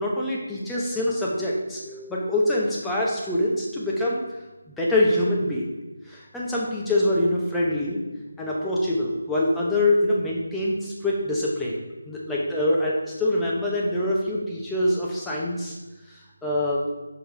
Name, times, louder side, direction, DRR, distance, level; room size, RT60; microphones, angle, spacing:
voice 1, 0.0-4.2 4.8-5.7 6.1-8.0 8.4-11.8 12.0-15.8 16.4-16.8, left 1 dB, 5° left, -5 dB, 0.9 m, -24 dB
5.1 x 4.9 x 5.0 m, 1.1 s
figure-of-eight pair, 165°, 0 cm